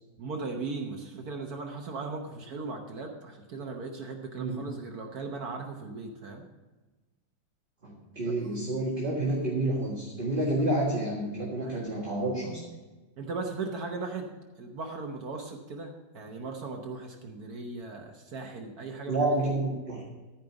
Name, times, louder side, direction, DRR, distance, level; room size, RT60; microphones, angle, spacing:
voice 1, 0.2-6.5 8.2-8.4 11.6-11.9 13.2-14.3 14.6-19.2, right 3 dB, 60° right, 2 dB, 1.5 m, -38 dB
voice 2, 7.8-12.6 19.1-20.0, right 1 dB, 30° right, -4 dB, 1.8 m, -29 dB
13.5 x 5.2 x 7.0 m, 1.2 s
omnidirectional pair, 2.0 m